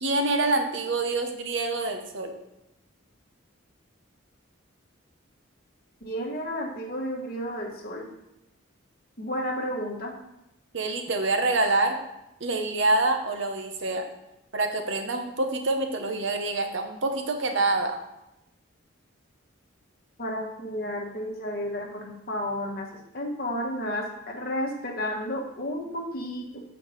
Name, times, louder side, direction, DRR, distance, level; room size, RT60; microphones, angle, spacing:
voice 1, 0.0-2.3 10.7-12.0 12.4-14.0 14.5-18.0, right 2 dB, 60° right, 5 dB, 0.8 m, -26 dB
voice 2, 6.0-8.1 9.2-10.1 20.2-26.6, equal, 45° left, 0 dB, 1.1 m, -32 dB
8.0 x 4.6 x 3.9 m, 0.88 s
head